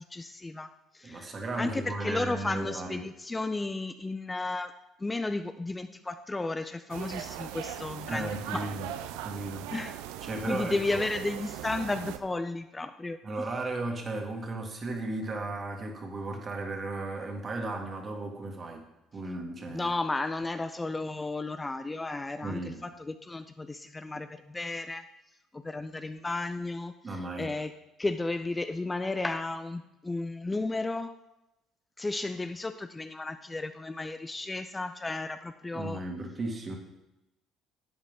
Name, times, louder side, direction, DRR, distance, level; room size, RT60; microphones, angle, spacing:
voice 1, 0.0-4.7 5.0-8.7 9.7-10.0 10.4-13.2 19.7-25.0 25.5-27.7 28.0-31.1 32.0-36.0, left 2 dB, 20° left, 9 dB, 0.5 m, -33 dB
voice 2, 1.0-3.0 8.1-8.9 9.2-9.7 10.2-11.1 13.2-18.8 19.1-19.9 22.4-22.8 27.0-27.5 35.7-36.8, right 2 dB, 40° right, 2 dB, 2.2 m, -35 dB
sound 1, 6.9-12.2, right 11 dB, 80° right, 0.5 m, -39 dB
11.5 x 8.2 x 3.7 m, 0.91 s
supercardioid pair, 70°, 0 cm